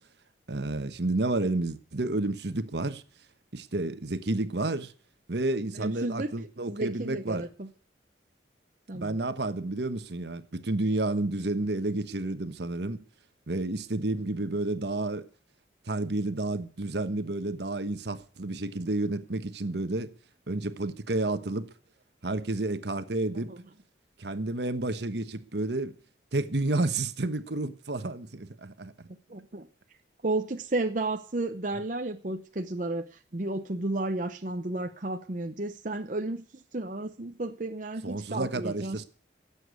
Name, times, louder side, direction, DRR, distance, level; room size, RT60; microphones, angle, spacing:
voice 1, 0.5-3.0 3.5-4.9 5.3-7.5 8.9-13.0 13.5-15.2 15.9-20.1 20.5-21.7 22.2-23.5 24.2-25.9 26.3-29.1 38.0-39.0, right 2 dB, 70° right, 1.2 m, -30 dB
voice 2, 5.7-6.3 6.7-7.7 8.9-9.2 23.5-23.6 29.3-29.7 30.2-39.0, right 2 dB, 45° right, 0.8 m, -33 dB
15.0 x 8.3 x 8.2 m
head